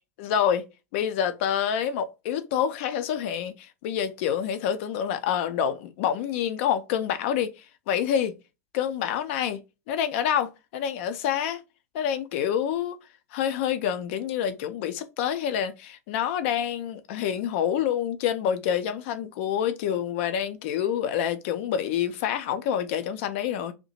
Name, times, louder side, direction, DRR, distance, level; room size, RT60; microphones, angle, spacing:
voice 1, 0.2-0.7 0.9-7.5 7.9-8.4 8.7-9.6 9.9-11.6 11.9-13.0 13.3-23.7, left 9 dB, 50° left, 0.5 m, -27 dB
2.7 x 2.1 x 2.8 m
figure-of-eight pair, 90°, 9 cm